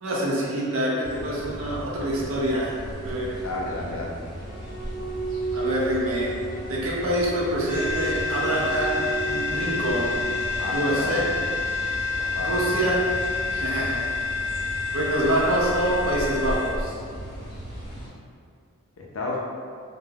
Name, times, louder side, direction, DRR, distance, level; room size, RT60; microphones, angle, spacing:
voice 1, 0.0-2.7 3.0-3.4 5.5-6.3 6.7-9.0 9.3-10.1 10.7-11.3 12.4-13.0 13.6-14.0 14.9-16.9, right 1 dB, 65° right, -5 dB, 0.5 m, -26 dB
sound 1, 1.0-18.1, equal, 20° left, 0.6 m, -37 dB
voice 2, 3.4-4.1 10.6-11.1 12.1-12.9 19.0-19.4, left 2 dB, 65° left, -4 dB, 0.4 m, -32 dB
sound 2, 4.5-10.2, right 3 dB, 25° right, 0.7 m, -33 dB
sound 3, 7.7-16.7, left 4 dB, 50° left, 0.8 m, -29 dB
2.3 x 2.1 x 3.2 m, 2.2 s
head